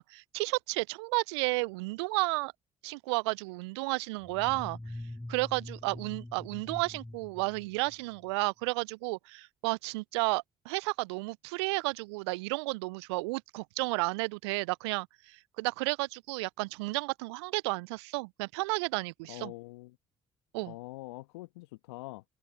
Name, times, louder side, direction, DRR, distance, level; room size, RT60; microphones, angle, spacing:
voice 1, 0.0-2.5 2.8-4.8 5.3-19.5 20.5-20.7, right 26 dB, 75° right, 0.4 m, -32 dB
sound 1, 4.2-8.3, left 1 dB, 10° left, 5.3 m, -44 dB
voice 2, 19.3-20.0 20.7-22.2, left 21 dB, 75° left, 1.9 m, -44 dB
figure-of-eight pair, 45°, 14 cm